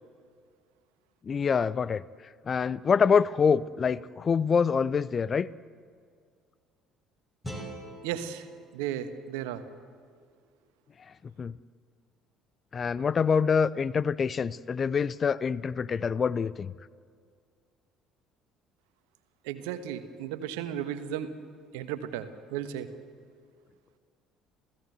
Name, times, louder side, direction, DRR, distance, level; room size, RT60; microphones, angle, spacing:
voice 1, 1.3-2.0 2.5-5.5 11.4-11.5 12.7-16.7, left 6 dB, 35° left, 21 dB, 0.5 m, -25 dB
sound 1, 7.4-10.5, right 1 dB, 15° left, 6.1 m, -45 dB
voice 2, 8.0-8.5 8.7-9.6 19.4-21.3 21.7-22.9, right 10 dB, 65° right, 11 dB, 1.4 m, -34 dB
27.5 x 16.5 x 8.1 m, 2.1 s
figure-of-eight pair, 55°, 0 cm